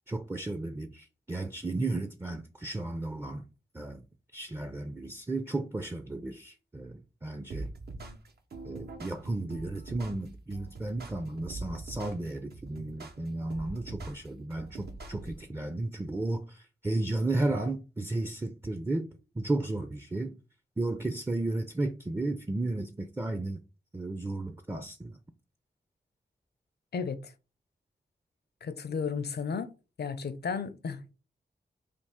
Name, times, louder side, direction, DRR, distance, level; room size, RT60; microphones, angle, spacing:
voice 1, 0.1-3.4 3.7-4.0 4.3-7.7 8.6-19.1 19.4-20.4 20.8-23.6 23.9-25.2, right 2 dB, 15° right, 0.4 m, -33 dB
sound 1, 7.5-15.5, right 3 dB, 65° right, 0.6 m, -43 dB
voice 2, 26.9-27.3 28.6-29.7 30.0-31.1, left 5 dB, 65° left, 0.5 m, -34 dB
3.3 x 2.4 x 3.5 m
cardioid pair, 45°, 18 cm